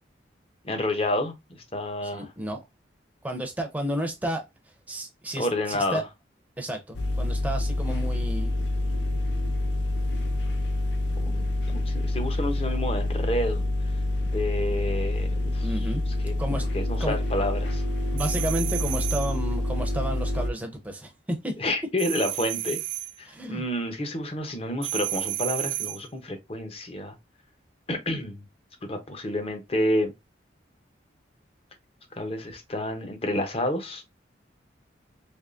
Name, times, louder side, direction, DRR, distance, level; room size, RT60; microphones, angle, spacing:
voice 1, 0.6-1.3 1.7-2.3 5.4-6.1 8.8-9.0 11.2-13.6 14.3-15.9 16.2-17.8 21.6-22.8 23.2-27.1 27.9-28.5 28.8-30.1 32.1-34.0, left 1 dB, 30° left, 0.7 m, -29 dB
voice 2, 2.0-2.6 3.2-4.4 4.9-6.0 6.6-8.5 15.6-16.0 16.4-16.7 17.0-17.2 18.1-21.1 21.4-21.5 23.3-23.6, right 1 dB, 10° right, 0.6 m, -32 dB
sound 1, 6.9-20.5, left 1 dB, 70° left, 0.6 m, -27 dB
sound 2, 18.2-19.4 22.0-23.2 24.8-26.1, right 16 dB, 85° right, 0.4 m, -32 dB
3.5 x 3.1 x 2.5 m
head